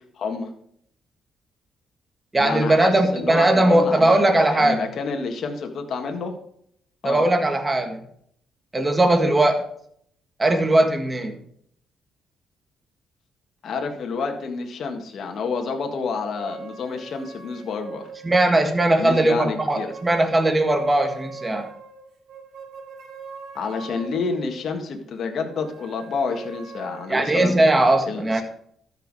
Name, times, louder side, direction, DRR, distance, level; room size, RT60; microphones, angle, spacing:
voice 1, 0.2-0.5 2.4-6.3 7.0-7.2 13.6-18.0 19.0-19.9 23.5-27.5 28.1-28.4, left 4 dB, 60° left, 4 dB, 1.8 m, -29 dB
voice 2, 2.3-4.8 7.0-8.0 8.7-9.6 10.4-11.4 18.2-21.7 27.1-28.4, right 1 dB, 20° right, 5 dB, 1.6 m, -19 dB
sound 1, 16.3-19.1 19.6-24.8 25.4-27.9, right 4 dB, 75° right, 3.2 m, -42 dB
13.0 x 5.8 x 4.9 m, 0.67 s
cardioid pair, 90°, 0 cm